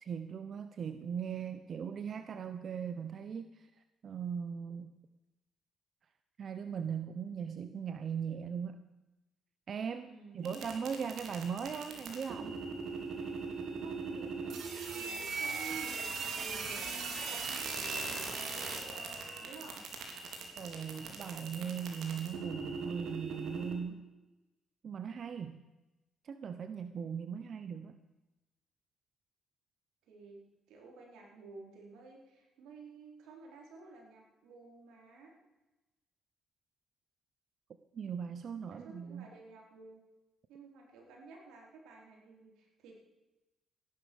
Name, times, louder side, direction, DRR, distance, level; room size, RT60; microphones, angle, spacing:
voice 1, 0.0-3.7 4.0-4.9 6.4-8.8 9.7-12.6 20.6-24.1 24.8-25.6 26.2-28.0 37.9-39.3, right 7 dB, 55° right, 10 dB, 0.9 m, -39 dB
voice 2, 10.0-11.0 13.7-19.8 30.1-30.4 30.7-35.3 38.7-40.0 40.5-42.9, right 3 dB, 90° right, 1 dB, 4.5 m, -52 dB
sound 1, 10.4-23.7, right 4 dB, 70° right, 3.6 m, -39 dB
15.5 x 11.5 x 7.2 m, 1.1 s
cardioid pair, 90°, 0 cm